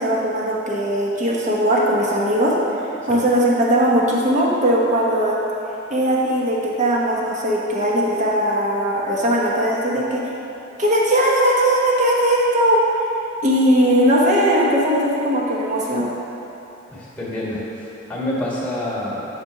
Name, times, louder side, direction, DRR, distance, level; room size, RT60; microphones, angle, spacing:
voice 1, 0.0-2.5 3.1-5.4 5.9-10.3 10.8-12.8 13.4-16.1, equal, 40° right, -4 dB, 1.1 m, -19 dB
voice 2, 16.9-19.3, left 1 dB, 10° left, -6 dB, 1.5 m, -27 dB
6.7 x 4.3 x 5.6 m, 2.9 s
head